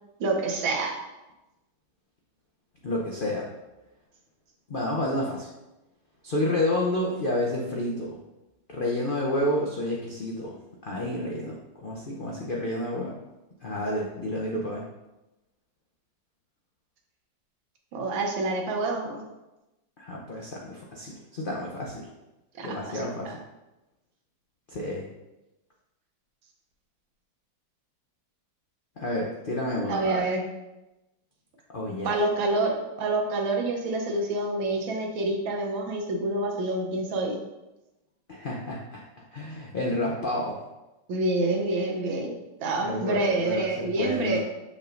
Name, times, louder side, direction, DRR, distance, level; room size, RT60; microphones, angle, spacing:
voice 1, 0.2-1.0 17.9-19.2 22.6-23.4 29.9-30.4 32.0-37.4 41.1-42.3 42.6-44.4, right 2 dB, 85° right, 2 dB, 1.7 m, -27 dB
voice 2, 2.8-3.5 4.7-5.5 6.2-8.2 8.7-10.6 10.8-13.1 13.6-14.8 20.0-22.1 22.6-23.3 24.7-25.1 29.0-30.2 31.7-32.1 38.3-39.0 39.3-40.6 42.8-44.4, left 1 dB, 80° left, -3 dB, 0.4 m, -30 dB
6.9 x 5.3 x 2.5 m, 0.98 s
omnidirectional pair, 2.1 m